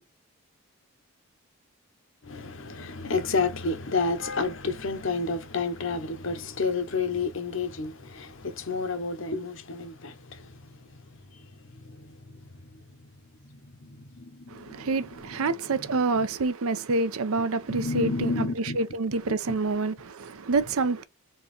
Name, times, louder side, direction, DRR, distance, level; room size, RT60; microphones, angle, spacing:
voice 1, 2.2-12.8 13.5-14.9 15.4-15.5 15.8-15.9 16.2-16.3 17.7-18.8, left 4 dB, 60° left, 0.8 m, -31 dB
voice 2, 14.5-21.0, right 3 dB, 75° right, 0.6 m, -27 dB
4.5 x 2.9 x 3.3 m
head